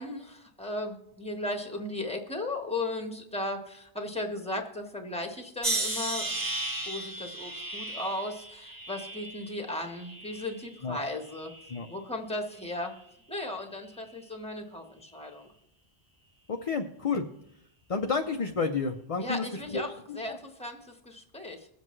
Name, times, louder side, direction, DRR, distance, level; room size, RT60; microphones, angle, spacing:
voice 1, 0.0-6.4 6.9-11.5 11.9-12.9 13.3-15.5 19.2-19.9 20.1-21.7, left 1 dB, 5° left, 3 dB, 1.3 m, -36 dB
sound 1, 5.6-10.8 11.2-11.9 12.6-12.9, right 2 dB, 20° right, 0.9 m, -35 dB
voice 2, 16.5-17.3 17.9-19.4 19.7-19.8 20.3-20.4, left 4 dB, 40° left, 4 dB, 0.6 m, -30 dB
22.0 x 7.6 x 3.2 m, 0.79 s
omnidirectional pair, 1.0 m